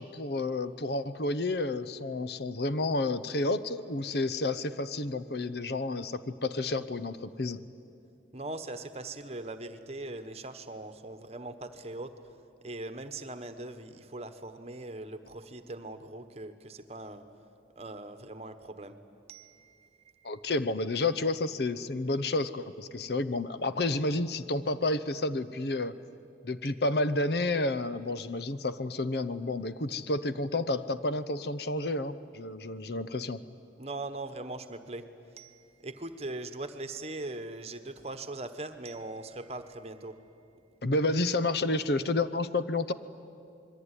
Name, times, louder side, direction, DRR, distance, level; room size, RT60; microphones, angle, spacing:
voice 1, 0.0-7.6 20.2-25.9 26.4-33.4 40.8-42.9, left 2 dB, 60° left, 13 dB, 0.8 m, -30 dB
voice 2, 8.3-12.1 12.6-17.2 17.7-19.0 19.3-19.9 20.1-20.4 33.8-35.1 35.3-40.2, right 2 dB, 35° right, 9 dB, 1.3 m, -41 dB
26.5 x 22.0 x 9.9 m, 2.5 s
head